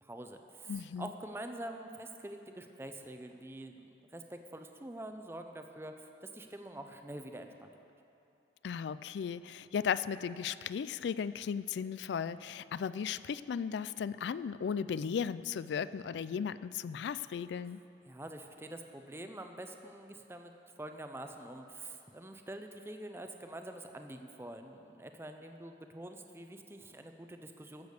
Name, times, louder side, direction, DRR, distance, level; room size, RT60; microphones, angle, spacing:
voice 1, 0.0-7.7 18.1-20.5 20.8-27.9, right 1 dB, 15° right, 6 dB, 0.5 m, -46 dB
voice 2, 0.7-1.1 8.6-17.8, left 7 dB, 70° left, 16 dB, 0.3 m, -36 dB
14.5 x 7.0 x 6.5 m, 2.8 s
head